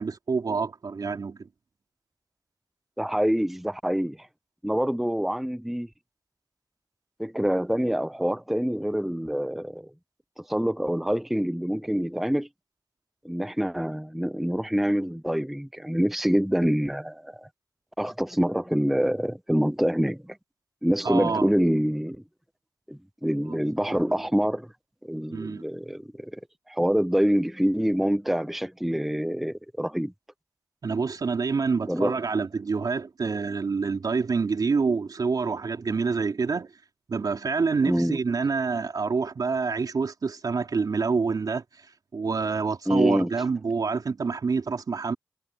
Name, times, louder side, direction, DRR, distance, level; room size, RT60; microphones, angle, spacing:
voice 1, 0.0-1.5 21.0-21.5 23.5-23.6 23.9-24.2 25.3-25.7 30.8-36.7 37.1-41.6 42.1-45.1, right 4 dB, 70° right, 3.7 m, -27 dB
voice 2, 3.0-4.3 4.6-5.9 7.2-9.9 10.4-12.5 13.2-17.5 18.0-20.4 20.8-22.2 22.9-24.7 25.0-26.4 26.7-30.1 31.9-32.2 37.8-38.2 42.9-43.3, equal, 5° right, 0.6 m, -26 dB
cardioid pair, 40°, 7 cm